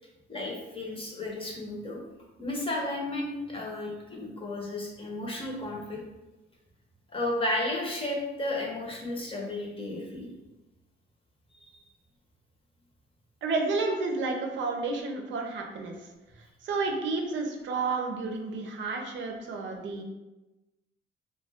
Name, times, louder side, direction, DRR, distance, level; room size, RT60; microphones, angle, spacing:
voice 1, 0.3-2.0 2.4-6.0 7.1-10.3 11.6-11.7, left 1 dB, 25° left, -2 dB, 0.8 m, -33 dB
voice 2, 13.4-15.9 16.6-20.0, right 3 dB, 70° right, 2 dB, 0.5 m, -31 dB
2.4 x 2.2 x 3.4 m, 1.1 s
cardioid pair, 90°, 20 cm